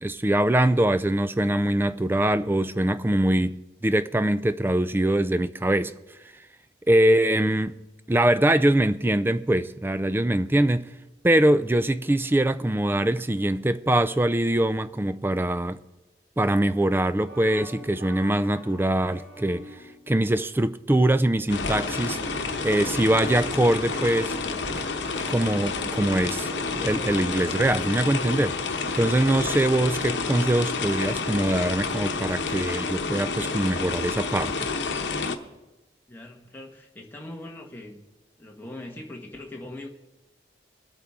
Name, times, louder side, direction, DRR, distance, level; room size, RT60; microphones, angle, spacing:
voice 1, 0.0-5.9 6.9-7.7 8.1-10.9 11.2-15.8 16.4-19.7 20.1-22.2 22.6-24.4 25.3-34.7, right 1 dB, 10° right, 0.3 m, -23 dB
sound 1, 17.2-20.1, left 1 dB, 50° right, 4.4 m, -45 dB
sound 2, 21.5-35.4, left 4 dB, 80° left, 0.9 m, -29 dB
sound 3, 21.6-27.8, right 2 dB, 75° right, 2.0 m, -41 dB
voice 2, 36.1-38.0 38.4-39.9, left 1 dB, 10° left, 1.2 m, -41 dB
21.5 x 8.6 x 3.6 m
head